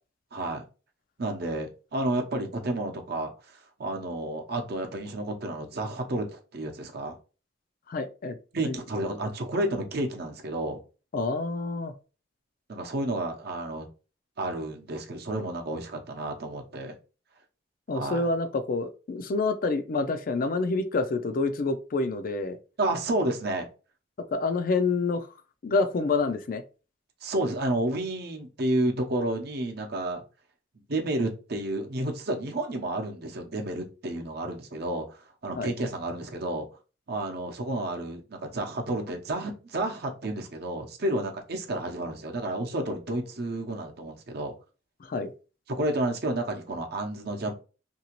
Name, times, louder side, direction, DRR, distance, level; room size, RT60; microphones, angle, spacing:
voice 1, 0.3-0.6 1.2-3.3 3.8-7.2 8.5-10.8 12.7-13.9 14.4-17.0 17.9-18.3 22.8-23.7 27.2-30.2 30.9-35.0 35.4-36.7 37.1-44.5 45.8-47.5, right 1 dB, 55° right, 3 dB, 0.7 m, -31 dB
voice 2, 7.9-8.8 11.1-11.9 17.9-22.6 24.3-25.3 25.6-26.6 35.6-35.7 45.0-45.3, left 3 dB, 45° left, 9 dB, 0.4 m, -28 dB
2.9 x 2.6 x 2.9 m, 0.33 s
head